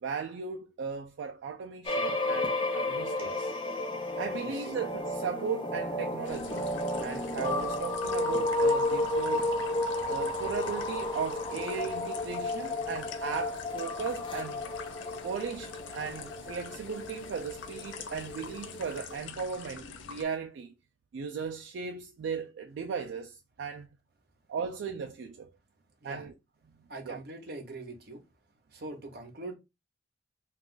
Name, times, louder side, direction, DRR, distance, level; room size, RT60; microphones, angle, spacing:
voice 1, 0.0-3.5 4.2-6.7 7.0-9.5 10.1-14.6 15.2-20.7 21.1-23.9 24.5-25.5 26.0-26.3 27.1-27.2, right 6 dB, 75° right, 0.3 m, -37 dB
sound 1, 1.8-19.2, left 2 dB, 25° left, 0.5 m, -32 dB
voice 2, 4.3-4.7 26.0-26.3 26.9-28.2 28.7-29.5, right 2 dB, 55° right, 0.8 m, -42 dB
sound 2, 6.2-20.2, left 5 dB, 80° left, 0.4 m, -45 dB
2.4 x 2.4 x 3.7 m
head